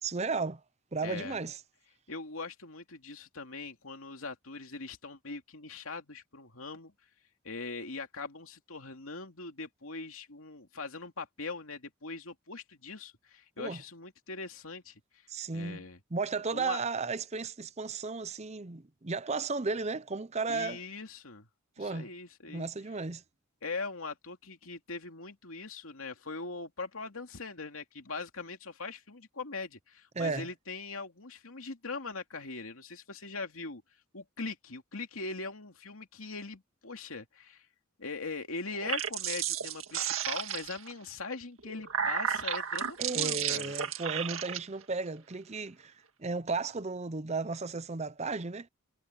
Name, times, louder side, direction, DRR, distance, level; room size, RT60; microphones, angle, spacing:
voice 1, 0.0-0.6 0.9-1.6 13.6-13.8 15.3-15.8 16.1-20.8 21.8-22.1 22.5-23.2 30.2-30.5 43.0-48.7, right 4 dB, 30° right, 0.7 m, -34 dB
voice 2, 1.0-1.4 2.1-6.9 7.4-16.0 16.5-16.8 20.5-21.5 21.8-22.7 23.6-37.7 38.0-43.7, left 3 dB, 80° left, 2.7 m, -41 dB
sound 1, 38.7-40.9 41.6-44.6, right 8 dB, 75° right, 1.9 m, -33 dB
head